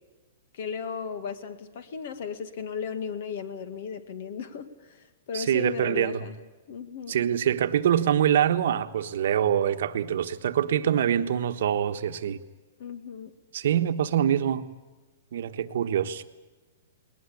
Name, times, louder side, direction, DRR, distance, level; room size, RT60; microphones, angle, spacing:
voice 1, 0.5-6.4 6.7-7.2 12.8-13.3, left 6 dB, 45° left, 2.0 m, -36 dB
voice 2, 5.3-6.2 7.1-12.4 13.5-14.7 15.3-16.2, right 9 dB, 55° right, 1.3 m, -25 dB
20.5 x 20.0 x 8.6 m
hypercardioid pair, 170°, 0 cm